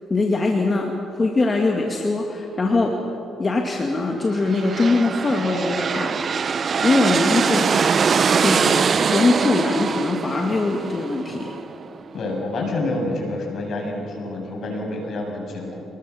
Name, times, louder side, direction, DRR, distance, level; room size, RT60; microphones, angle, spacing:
voice 1, 0.1-3.0 3.4-6.5 6.8-7.7 8.4-11.6, left 3 dB, 30° left, 1 dB, 2.3 m, -22 dB
sound 1, 4.4-12.0, right 6 dB, 45° right, 0.7 m, -23 dB
voice 2, 12.1-15.8, left 2 dB, 60° left, 0 dB, 7.4 m, -28 dB
26.5 x 20.5 x 7.2 m, 3.0 s
cardioid pair, 90°, 0 cm